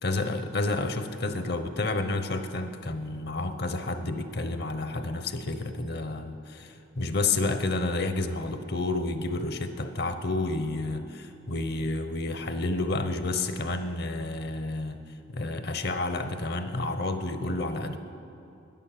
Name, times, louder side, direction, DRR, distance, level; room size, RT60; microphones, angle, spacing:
voice 1, 0.0-15.0 15.3-18.0, left 2 dB, 55° left, 9 dB, 0.9 m, -30 dB
11.0 x 10.5 x 7.6 m, 2.7 s
head